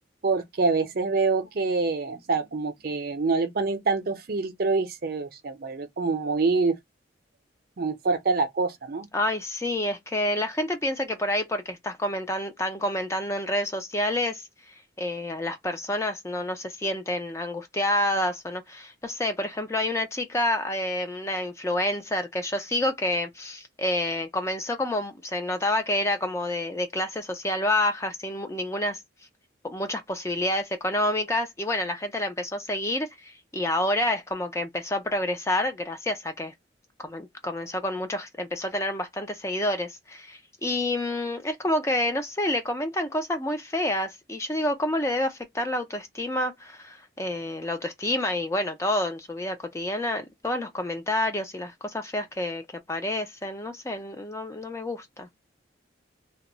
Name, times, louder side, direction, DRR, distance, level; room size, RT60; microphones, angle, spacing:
voice 1, 0.2-6.8 7.8-9.1, right 4 dB, 50° right, 0.5 m, -26 dB
voice 2, 9.1-29.0 29.6-36.5 37.0-55.3, left 1 dB, 15° left, 0.4 m, -28 dB
2.2 x 2.0 x 3.8 m
head